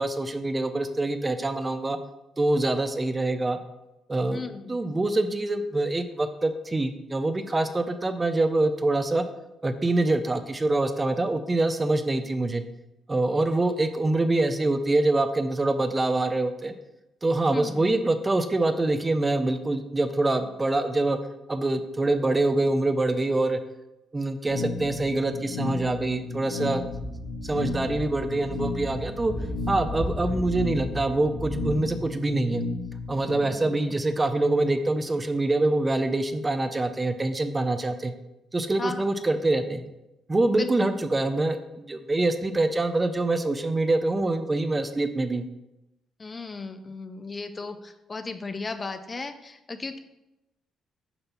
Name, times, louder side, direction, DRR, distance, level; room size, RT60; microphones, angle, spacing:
voice 1, 0.0-2.0 2.4-3.6 4.1-4.4 4.7-9.2 9.6-12.6 13.1-16.7 17.2-21.2 21.5-23.6 24.1-26.8 27.4-29.3 29.7-32.6 33.1-38.1 38.5-39.8 40.3-45.4, right 2 dB, 20° right, 10 dB, 0.5 m, -25 dB
voice 2, 4.3-4.8 17.5-17.9 33.4-33.8 38.8-39.1 40.6-40.9 46.2-50.0, left 3 dB, 30° left, 9 dB, 0.5 m, -36 dB
sound 1, 24.5-33.5, left 3 dB, 80° left, 1.0 m, -34 dB
Speech / Wind, 26.9-31.8, equal, 5° left, 1.4 m, -35 dB
6.8 x 2.8 x 5.6 m, 0.93 s
cardioid pair, 90°, 0 cm